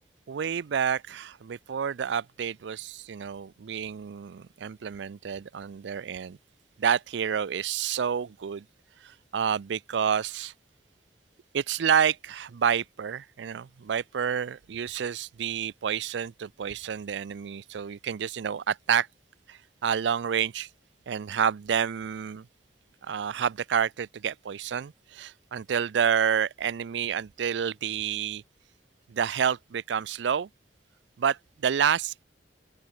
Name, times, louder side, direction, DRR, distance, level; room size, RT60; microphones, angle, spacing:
voice 1, 0.3-6.4 6.8-8.6 9.0-10.5 11.5-19.1 19.5-20.7 21.1-22.5 23.0-28.4 29.1-30.5 31.2-32.2, right 7 dB, 70° right, 0.4 m, -29 dB
open air
head